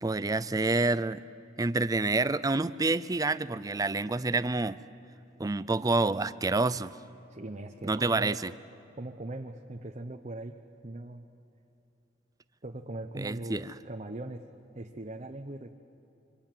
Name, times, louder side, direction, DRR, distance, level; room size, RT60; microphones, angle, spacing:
voice 1, 0.0-1.2 1.6-4.8 5.4-6.9 7.8-8.5 13.1-13.7, right 3 dB, 20° right, 16 dB, 0.5 m, -28 dB
voice 2, 7.3-8.4 8.9-10.5 10.8-11.2 12.6-14.4 14.7-15.7, right 2 dB, 40° right, 4 dB, 0.9 m, -40 dB
27.0 x 24.5 x 7.6 m, 2.9 s
head